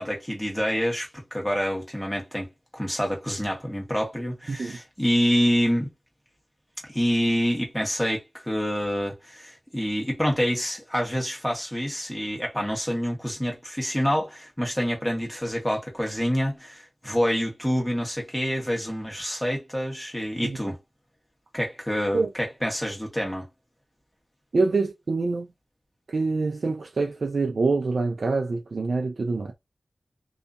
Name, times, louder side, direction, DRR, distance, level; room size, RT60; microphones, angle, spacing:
voice 1, 0.0-5.9 6.9-20.8 21.5-23.5, equal, 5° left, 1.3 m, -27 dB
voice 2, 24.5-25.5 26.1-29.5, right 3 dB, 75° right, 0.4 m, -25 dB
2.7 x 2.4 x 2.4 m
wide cardioid pair, 85°, 0 cm